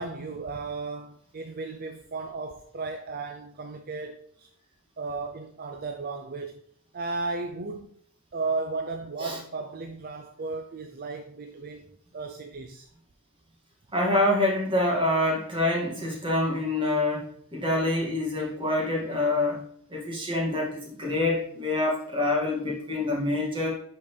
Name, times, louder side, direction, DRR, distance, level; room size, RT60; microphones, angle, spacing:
voice 1, 0.0-4.5 5.0-6.6 6.9-7.9 8.3-12.9, right 3 dB, 40° right, 0.5 m, -35 dB
voice 2, 13.9-19.6 19.9-23.7, left 2 dB, 25° right, 2.1 m, -26 dB
11.0 x 4.4 x 3.3 m
head